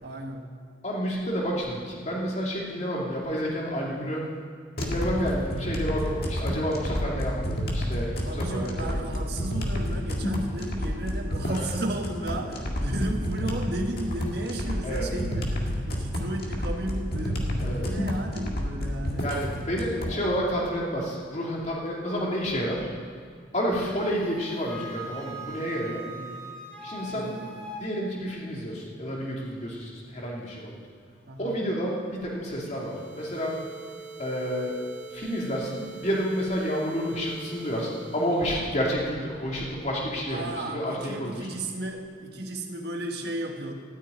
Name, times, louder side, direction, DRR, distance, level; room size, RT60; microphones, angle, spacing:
voice 1, 0.0-0.5 8.2-19.3 26.1-26.5 27.1-27.7 31.3-31.6 40.3-43.7, right 1 dB, 60° right, 2 dB, 1.4 m, -34 dB
voice 2, 0.8-4.2 4.8-8.9 11.5-11.7 14.8-15.0 17.6-17.8 19.2-22.9 23.5-26.0 26.8-27.3 27.8-30.8 31.4-33.6 34.2-34.7 35.1-41.5, equal, 40° left, -3 dB, 2.5 m, -30 dB
sound 1, 4.8-20.2, equal, 55° left, 1.8 m, -30 dB
Wind instrument woodwind instrument, 23.8-27.9, right 2 dB, 5° left, 1.9 m, -41 dB
sound 2, 32.6-38.8, right 5 dB, 40° right, 1.5 m, -44 dB
13.5 x 6.6 x 9.0 m, 2.1 s
head